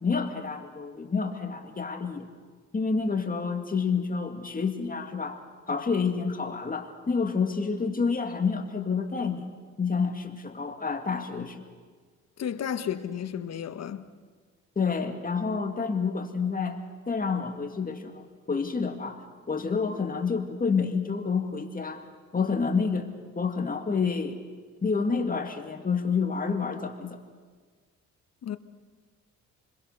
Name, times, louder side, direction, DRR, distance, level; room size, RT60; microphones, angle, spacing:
voice 1, 0.0-2.3 2.7-9.5 9.8-11.6 14.8-16.8 17.1-19.2 19.5-22.0 22.3-23.1 23.4-24.4 24.8-27.2, left 5 dB, 30° left, 2.3 m, -29 dB
voice 2, 12.4-14.0 28.4-28.6, left 9 dB, 55° left, 1.4 m, -32 dB
29.5 x 21.5 x 6.8 m
cardioid pair, 90°, 30 cm